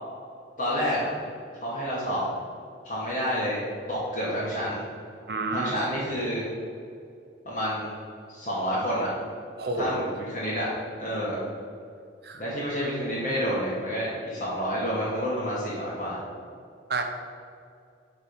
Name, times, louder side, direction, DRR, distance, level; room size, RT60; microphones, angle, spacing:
voice 1, 0.6-1.1 1.6-2.2 2.8-4.8 5.5-6.4 7.5-7.9 8.3-9.1 9.8-10.7 11.0-11.4 12.3-16.2, equal, 40° left, -11 dB, 2.4 m, -29 dB
voice 2, 5.3-5.7 9.6-10.0 12.2-12.4 16.9-17.0, right 3 dB, 55° right, 4 dB, 1.0 m, -29 dB
12.0 x 4.7 x 5.6 m, 2.4 s
head